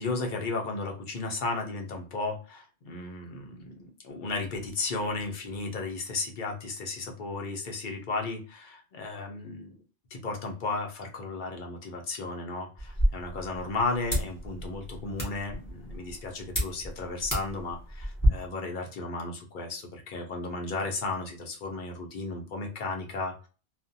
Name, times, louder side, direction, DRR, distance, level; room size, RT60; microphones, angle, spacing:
voice 1, 0.0-9.8 10.1-23.5, left 3 dB, 55° left, 2 dB, 0.7 m, -34 dB
sound 1, 12.8-18.3, equal, 20° left, 0.8 m, -31 dB
2.5 x 2.1 x 2.5 m, 0.35 s
omnidirectional pair, 1.2 m